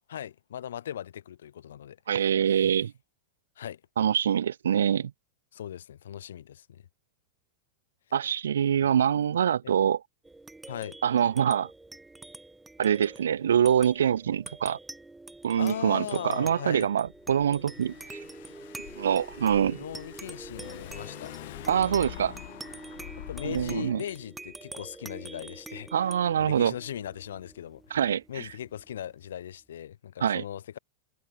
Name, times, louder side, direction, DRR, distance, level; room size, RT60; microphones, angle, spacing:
voice 1, 0.1-2.7 3.6-3.8 5.5-6.8 8.6-8.9 9.6-9.7 10.7-11.0 15.6-16.9 19.6-21.3 23.2-25.9 26.4-28.0 28.3-30.8, left 10 dB, 80° left, 5.9 m, -39 dB
voice 2, 2.1-2.9 4.0-5.1 8.1-10.0 11.0-11.7 12.8-14.8 15.4-18.2 19.0-19.8 21.7-22.4 23.4-24.0 25.9-26.7 27.9-28.5 30.2-30.4, right 9 dB, 85° right, 0.8 m, -25 dB
sound 1, 10.2-29.1, right 2 dB, 10° right, 3.2 m, -46 dB
Car / Engine, 17.1-24.0, left 17 dB, 65° left, 5.6 m, -45 dB
hypercardioid pair, 110°, 0 cm